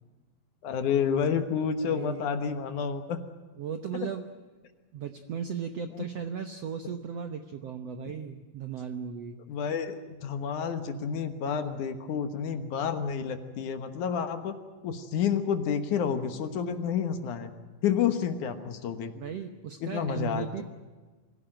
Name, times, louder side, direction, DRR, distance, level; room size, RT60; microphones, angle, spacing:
voice 1, 0.6-3.2 4.0-4.1 5.9-6.0 9.5-14.6 14.8-17.5 17.8-19.1 19.8-20.6, left 7 dB, 65° left, 9 dB, 2.5 m, -29 dB
voice 2, 1.8-2.3 3.6-4.2 4.9-9.4 19.1-20.6, right 7 dB, 70° right, 8 dB, 1.5 m, -36 dB
24.0 x 16.5 x 9.0 m, 1.4 s
omnidirectional pair, 4.2 m